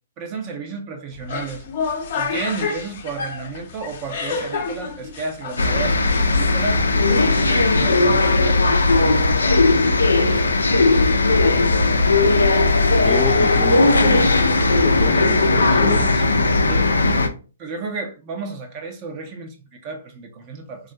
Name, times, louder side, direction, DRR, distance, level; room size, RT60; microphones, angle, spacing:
voice 1, 0.2-1.6 2.1-9.6 10.3-10.5 16.7-16.9 17.6-20.9, right 4 dB, 35° right, 0.6 m, -32 dB
sound 1, 1.1-10.2, left 5 dB, 50° left, 0.7 m, -31 dB
sound 2, 5.6-17.3, left 2 dB, 85° left, 0.5 m, -17 dB
voice 2, 13.0-14.3 14.8-16.2, left 3 dB, 5° left, 0.3 m, -30 dB
3.7 x 2.1 x 2.7 m
hypercardioid pair, 130°, 0 cm